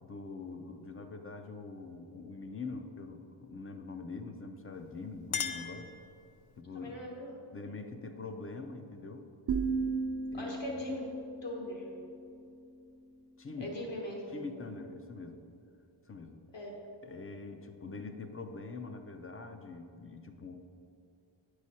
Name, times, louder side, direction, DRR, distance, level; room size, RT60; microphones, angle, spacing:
voice 1, 0.0-5.9 6.6-6.9 7.5-9.3 10.3-10.8 13.4-13.7 14.3-15.4 16.1-16.4 17.0-20.6, left 3 dB, 30° left, 6 dB, 0.4 m, -44 dB
Chink clink, 4.7-6.6, left 7 dB, 90° left, 0.6 m, -39 dB
voice 2, 6.7-7.4 10.3-11.1 11.4-11.9 13.6-14.6 16.5-16.7, equal, 60° left, -2 dB, 1.6 m, -40 dB
sound 1, 9.5-13.4, right 4 dB, 50° right, 0.5 m, -37 dB
8.9 x 4.8 x 4.2 m, 2.5 s
wide cardioid pair, 145°, 49 cm